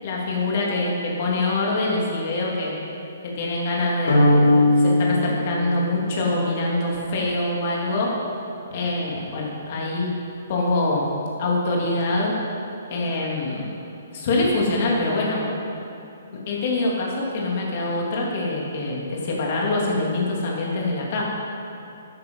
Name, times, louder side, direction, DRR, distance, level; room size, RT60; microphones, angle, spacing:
voice 1, 0.0-2.7 3.2-8.1 8.7-10.1 10.5-11.1 11.4-12.3 12.9-13.6 14.1-15.4 16.5-21.2, left 2 dB, 45° left, -3 dB, 3.3 m, -24 dB
sound 1, 4.1-6.4, left 1 dB, 75° left, 2.9 m, -19 dB
13.0 x 9.7 x 5.7 m, 2.8 s
figure-of-eight pair, 125°, 0 cm